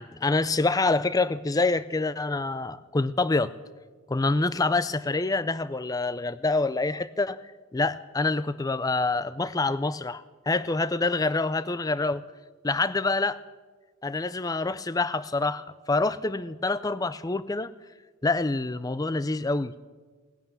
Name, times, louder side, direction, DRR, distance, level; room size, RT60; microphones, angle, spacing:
voice 1, 0.0-3.5 4.1-7.4 7.7-12.2 12.6-13.4 14.0-17.7 18.2-19.8, left 3 dB, 15° left, 16 dB, 0.4 m, -26 dB
19.0 x 11.0 x 7.1 m, 1.4 s
head